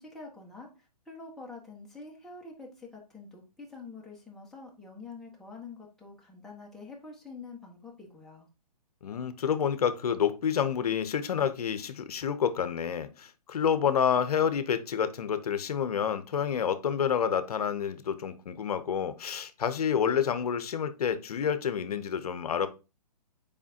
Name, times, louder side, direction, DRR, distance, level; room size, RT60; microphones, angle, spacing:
voice 1, 0.0-8.5, left 4 dB, ahead, 1.3 m, -46 dB
voice 2, 9.0-22.7, left 8 dB, 65° left, 0.8 m, -28 dB
7.2 x 5.0 x 2.8 m
hypercardioid pair, 150°, 21 cm